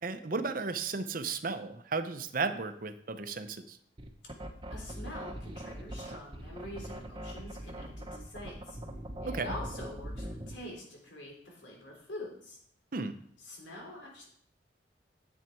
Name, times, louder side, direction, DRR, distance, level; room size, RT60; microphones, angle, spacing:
voice 1, 0.0-3.8 9.2-9.5 12.9-13.2, right 4 dB, 50° right, 10 dB, 0.7 m, -34 dB
sound 1, 4.0-10.6, equal, 25° right, 1.0 m, -41 dB
voice 2, 4.7-8.8 9.2-12.6 13.4-14.3, left 1 dB, 85° left, -1 dB, 3.5 m, -45 dB
10.5 x 7.4 x 4.6 m, 0.65 s
head